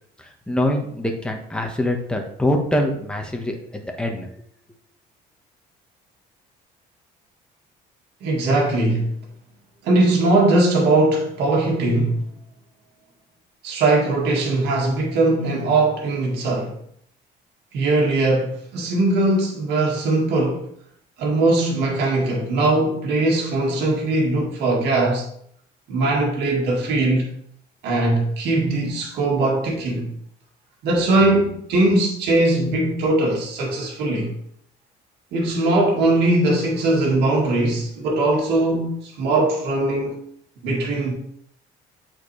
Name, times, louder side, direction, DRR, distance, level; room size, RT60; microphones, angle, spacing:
voice 1, 0.5-4.3, left 1 dB, 5° left, 1.3 m, -24 dB
voice 2, 8.2-9.1 9.8-12.2 13.6-16.8 17.7-20.7 21.2-25.2 25.9-27.3 27.8-30.1 30.8-34.3 35.3-40.2 40.6-41.1, right 2 dB, 80° right, 2.0 m, -20 dB
8.1 x 4.5 x 3.3 m
cardioid pair, 110°, 17 cm